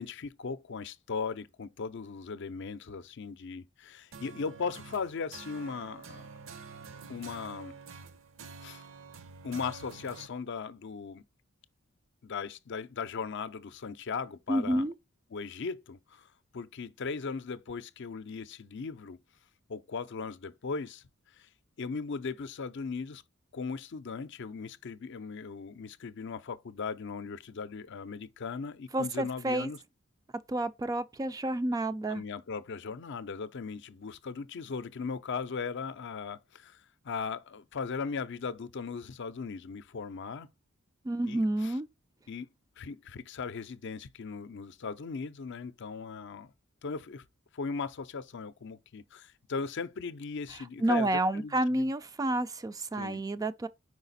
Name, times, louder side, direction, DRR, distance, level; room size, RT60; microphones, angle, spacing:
voice 1, 0.0-6.3 7.1-7.7 8.6-8.8 9.4-11.2 12.2-14.9 15.3-16.3 16.5-19.2 19.7-21.0 21.4-21.5 21.8-23.2 23.5-29.8 32.1-40.5 41.3-41.7 42.3-42.5 42.8-46.5 46.8-47.2 47.5-51.9 53.0-53.2, left 5 dB, 60° left, 0.5 m, -38 dB
sound 1, 4.1-10.3, right 5 dB, 65° right, 0.7 m, -48 dB
voice 2, 14.5-14.9 28.9-29.7 30.5-32.2 41.0-41.9 50.8-53.7, right 1 dB, 15° right, 0.3 m, -29 dB
4.9 x 4.8 x 4.0 m
head